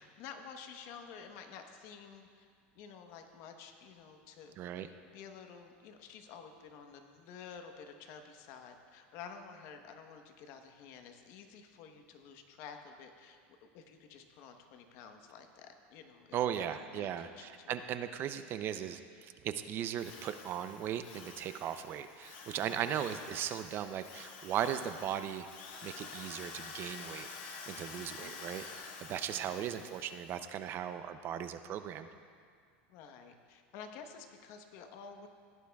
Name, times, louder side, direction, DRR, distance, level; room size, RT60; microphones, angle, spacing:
voice 1, 0.0-2.5 2.7-4.6 5.1-16.6 16.9-17.9 22.5-23.0 27.9-28.4 29.3-29.7 32.9-35.3, left 6 dB, 55° left, 6 dB, 1.0 m, -51 dB
voice 2, 4.6-4.9 16.3-25.5 25.8-28.6 29.0-32.1, right 10 dB, 40° right, 10 dB, 0.5 m, -37 dB
Drill, 20.0-30.4, left 4 dB, 75° left, 1.6 m, -49 dB
16.5 x 11.0 x 2.3 m, 2.1 s
supercardioid pair, 130°, 6 cm